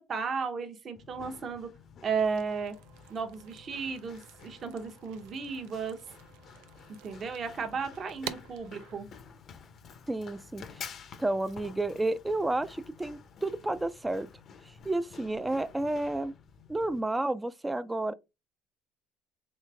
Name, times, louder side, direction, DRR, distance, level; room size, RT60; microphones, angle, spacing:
voice 1, 0.0-1.7 2.0-2.8 3.1-6.0 7.0-9.1, right 5 dB, 45° right, 0.8 m, -34 dB
Run, 1.0-17.0, left 6 dB, 50° left, 0.6 m, -51 dB
sound 1, 2.1-9.0, right 12 dB, 80° right, 0.4 m, -48 dB
voice 2, 10.1-10.9 11.2-14.3 14.8-16.3 16.7-18.1, right 2 dB, 10° right, 0.4 m, -31 dB
3.3 x 3.1 x 3.3 m
supercardioid pair, 90°, 0 cm